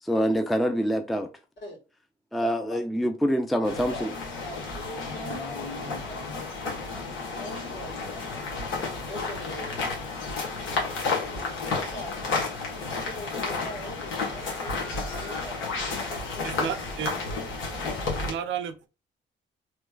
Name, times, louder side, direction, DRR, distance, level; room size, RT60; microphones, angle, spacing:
voice 1, 0.0-1.3 2.3-4.1, equal, ahead, 0.4 m, -25 dB
voice 2, 2.4-2.8 3.8-4.1 4.4-8.6 9.1-10.0 11.1-12.3 13.0-16.6 17.3-17.9, equal, 60° left, 1.9 m, -43 dB
sound 1, 3.6-18.3, left 3 dB, 80° left, 1.4 m, -32 dB
voice 3, 16.4-17.1 18.2-18.7, right 8 dB, 75° right, 0.5 m, -32 dB
3.1 x 3.0 x 2.3 m
cardioid pair, 90°, 20 cm